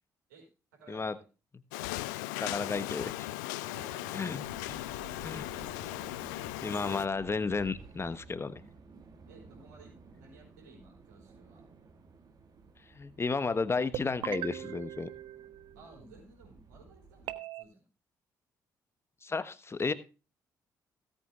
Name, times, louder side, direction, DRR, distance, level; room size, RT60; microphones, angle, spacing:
voice 1, 0.7-1.3 3.7-4.2 9.3-11.6 15.7-17.9, right 3 dB, 75° right, -1 dB, 4.8 m, -55 dB
sound 1, 1.7-7.1, left 18 dB, 70° left, 0.4 m, -38 dB
voice 2, 2.4-3.3 4.1-4.8 5.2-5.5 6.3-8.6 12.9-15.1 19.2-19.9, left 4 dB, 25° left, 14 dB, 1.1 m, -33 dB
sound 2, 4.4-17.3, right 4 dB, 40° right, 1.8 m, -54 dB
sound 3, 13.9-16.1 17.3-17.6, right 12 dB, 55° right, 0.8 m, -40 dB
17.5 x 8.4 x 2.4 m, 0.32 s
figure-of-eight pair, 40°, 10 cm